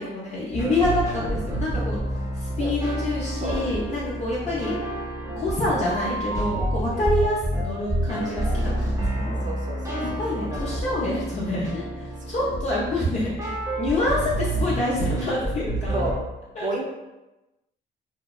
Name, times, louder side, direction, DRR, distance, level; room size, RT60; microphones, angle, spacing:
voice 1, 0.0-2.0 2.3-4.7 5.4-9.5 10.0-16.0 16.5-16.7, left 1 dB, 35° left, -7 dB, 0.5 m, -27 dB
sound 1, 0.5-16.2, right 1 dB, 15° right, 0.8 m, -29 dB
voice 2, 9.4-10.0 10.5-11.0 12.4-12.5 14.0-14.3 15.9-16.2 16.6-16.8, right 2 dB, 40° right, -1 dB, 0.4 m, -32 dB
2.7 x 2.1 x 2.3 m, 1.0 s
cardioid pair, 90°, 20 cm